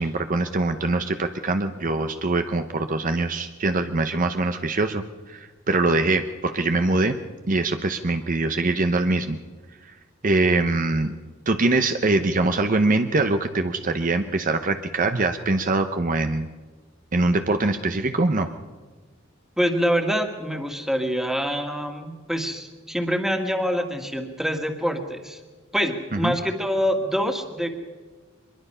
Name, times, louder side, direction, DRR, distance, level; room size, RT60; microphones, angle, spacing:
voice 1, 0.0-7.2 7.5-9.4 10.2-11.1 11.5-16.5 17.1-18.5 26.1-26.3, right 2 dB, 40° right, 7 dB, 0.8 m, -23 dB
voice 2, 19.6-25.4 25.7-27.7, equal, ahead, 4 dB, 2.0 m, -25 dB
24.0 x 22.0 x 5.6 m, 1.3 s
head